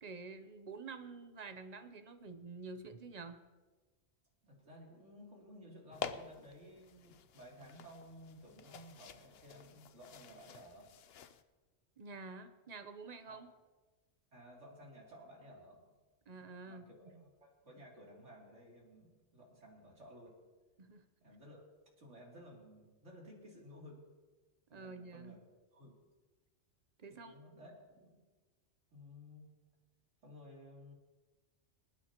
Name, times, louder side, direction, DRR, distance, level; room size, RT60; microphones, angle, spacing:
voice 1, 0.0-3.4 12.0-13.5 16.3-17.2 20.8-21.0 24.7-25.4 27.0-27.3, right 4 dB, 40° right, 9 dB, 0.8 m, -49 dB
voice 2, 4.4-10.9 13.3-13.4 14.3-15.8 16.3-20.3 21.2-21.6 22.0-24.1 24.7-25.4 25.7-25.9 27.1-27.8 28.0-28.2 28.9-29.5 30.2-30.9, equal, 85° right, -3 dB, 3.3 m, -56 dB
sound 1, 5.9-11.4, left 7 dB, 60° left, 0.8 m, -49 dB
27.5 x 9.3 x 2.9 m, 1.3 s
omnidirectional pair, 1.2 m